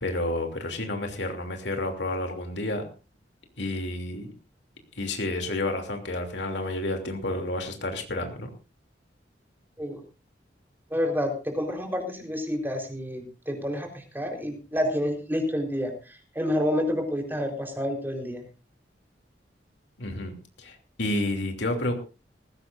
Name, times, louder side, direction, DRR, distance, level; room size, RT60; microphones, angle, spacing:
voice 1, 0.0-2.9 3.6-4.3 5.0-8.5 20.0-21.9, left 1 dB, 75° left, 4 dB, 2.9 m, -30 dB
voice 2, 10.9-18.4, equal, 10° right, 3 dB, 4.2 m, -29 dB
19.5 x 16.5 x 2.6 m, 0.33 s
head